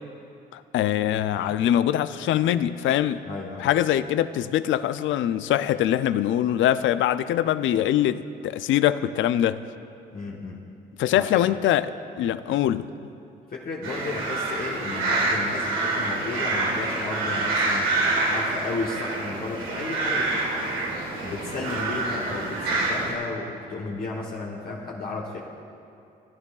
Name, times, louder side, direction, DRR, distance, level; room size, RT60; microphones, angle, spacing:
voice 1, 0.5-3.2 3.6-9.6 11.0-12.9, left 11 dB, 75° left, 13 dB, 0.4 m, -23 dB
voice 2, 3.2-3.7 10.1-10.6 11.1-11.4 13.5-17.9 18.2-20.6 21.2-25.4, left 3 dB, 50° left, -3 dB, 1.1 m, -33 dB
sound 1, 13.8-23.1, right 2 dB, 90° right, 1.5 m, -27 dB
17.0 x 9.5 x 2.4 m, 2.6 s
cardioid pair, 90°, 20 cm